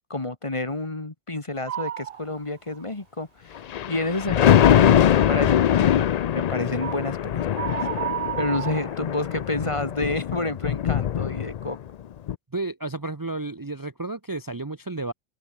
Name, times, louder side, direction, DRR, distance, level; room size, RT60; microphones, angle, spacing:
voice 1, 0.1-3.6 3.9-7.8 8.4-11.8, left 2 dB, 30° left, 1.7 m, -30 dB
sound 1, 1.7-2.2 2.7-2.8 6.8-7.1 7.5-9.5, right 10 dB, 70° right, 0.8 m, -31 dB
Thunder, 3.6-11.9 12.3-12.4, left 10 dB, 55° left, 0.5 m, -22 dB
voice 2, 12.5-15.1, right 2 dB, 20° right, 0.8 m, -32 dB
open air
omnidirectional pair, 1.0 m